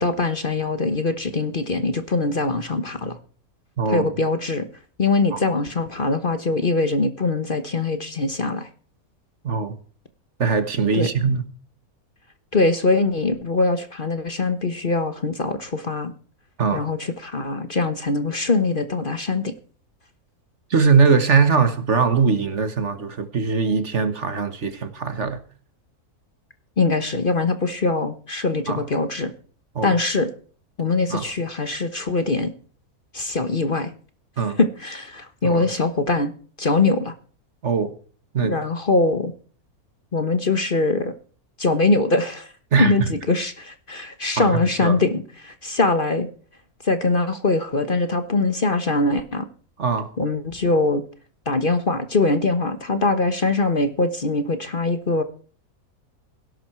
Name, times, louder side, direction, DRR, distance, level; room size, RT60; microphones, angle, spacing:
voice 1, 0.0-3.2 3.9-4.7 5.0-8.7 10.9-11.1 12.5-16.1 16.7-19.5 26.8-29.3 29.8-30.3 30.8-32.5 33.1-33.9 34.6-36.3 36.6-37.1 38.4-39.3 40.1-41.1 41.6-42.5 42.8-46.3 46.8-49.5 50.2-51.0 51.5-55.2, left 3 dB, 35° left, 10 dB, 1.3 m, -22 dB
voice 2, 3.8-4.1 5.3-5.4 9.4-9.8 10.4-11.5 16.6-16.9 20.7-25.4 28.7-28.9 29.7-29.9 31.1-31.3 34.4-34.6 35.4-35.7 37.6-37.9 38.3-38.6 42.7-43.1 44.4-45.0 49.8-50.1, right 5 dB, 50° right, 11 dB, 1.7 m, -21 dB
17.0 x 11.5 x 4.5 m, 0.42 s
omnidirectional pair, 1.6 m